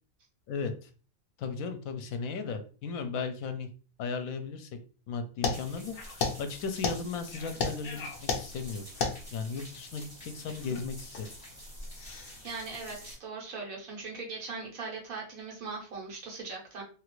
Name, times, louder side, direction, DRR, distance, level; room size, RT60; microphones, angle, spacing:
voice 1, 0.5-0.9 1.4-3.7 4.0-4.7 5.1-8.8 9.3-11.2, left 5 dB, 75° left, 7 dB, 1.0 m, -36 dB
sound 1, 5.4-13.1, left 5 dB, 60° left, 0.6 m, -36 dB
sound 2, 5.5-13.2, equal, 10° right, 1.3 m, -48 dB
voice 2, 12.4-16.8, right 4 dB, 75° right, -1 dB, 1.5 m, -40 dB
3.1 x 2.4 x 3.0 m, 0.38 s
omnidirectional pair, 1.5 m